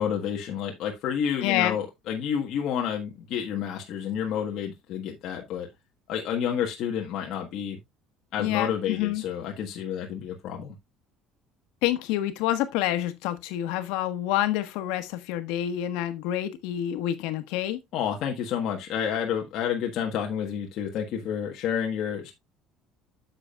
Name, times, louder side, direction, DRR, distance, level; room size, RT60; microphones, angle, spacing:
voice 1, 0.0-5.7 6.1-7.8 8.3-10.8 17.9-22.3, left 8 dB, 45° left, 1.4 m, -30 dB
voice 2, 1.4-1.8 8.4-9.2 11.8-17.8, left 13 dB, 85° left, 1.2 m, -28 dB
9.7 x 6.9 x 2.4 m
cardioid pair, 175°, 0 cm